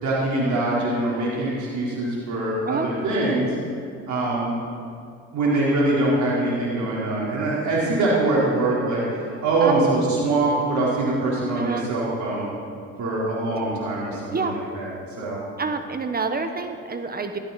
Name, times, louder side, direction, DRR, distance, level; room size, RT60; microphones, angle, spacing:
voice 1, 0.0-3.5 4.1-4.5 5.3-12.5 13.0-14.9 15.2-15.4, right 2 dB, 55° right, -6 dB, 4.1 m, -23 dB
voice 2, 15.6-17.4, right 4 dB, 25° right, 7 dB, 1.2 m, -28 dB
15.5 x 13.5 x 4.2 m, 2.4 s
hypercardioid pair, 70°, 34 cm